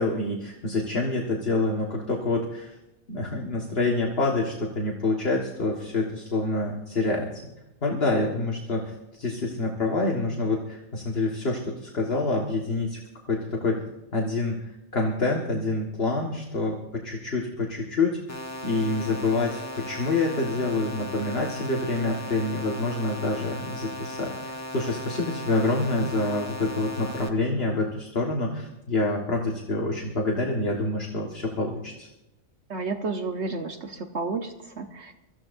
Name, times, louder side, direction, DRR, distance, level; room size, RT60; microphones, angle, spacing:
voice 1, 0.0-2.8 3.1-7.3 7.8-13.0 13.3-13.8 14.1-18.2 18.6-24.3 24.7-32.1, left 2 dB, 45° left, -1 dB, 1.9 m, -27 dB
sound 1, 18.3-27.3, left 1 dB, 10° left, 1.2 m, -37 dB
voice 2, 32.7-35.1, right 3 dB, 55° right, 5 dB, 1.2 m, -31 dB
24.0 x 15.0 x 2.6 m, 0.94 s
omnidirectional pair, 1.4 m